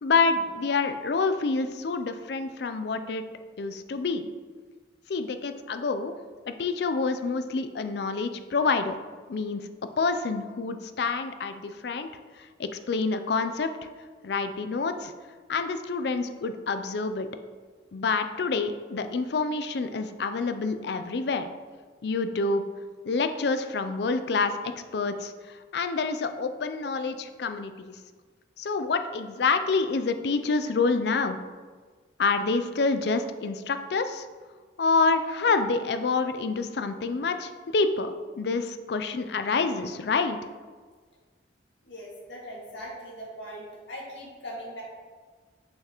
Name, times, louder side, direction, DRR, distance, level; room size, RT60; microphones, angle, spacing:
voice 1, 0.0-3.2 3.6-4.3 5.1-6.2 6.5-9.0 9.3-9.7 10.0-12.1 12.6-13.7 14.2-15.1 15.5-17.3 17.9-21.5 22.0-22.6 23.1-28.0 28.6-31.4 32.2-34.3 34.8-40.4, left 4 dB, 60° left, 9 dB, 0.4 m, -27 dB
voice 2, 41.8-44.8, equal, 80° left, -4 dB, 1.9 m, -40 dB
6.3 x 5.8 x 3.0 m, 1.5 s
head